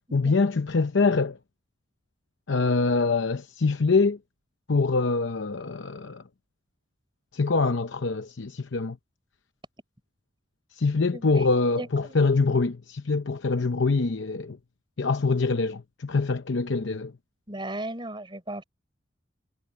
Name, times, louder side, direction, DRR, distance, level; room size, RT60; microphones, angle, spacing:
voice 1, 0.1-1.4 2.5-4.2 4.7-6.2 7.3-9.0 10.7-14.6 15.0-17.1, left 4 dB, 70° left, 0.7 m, -24 dB
voice 2, 11.1-11.5 11.8-12.3 17.5-18.6, right 1 dB, 25° right, 3.9 m, -36 dB
head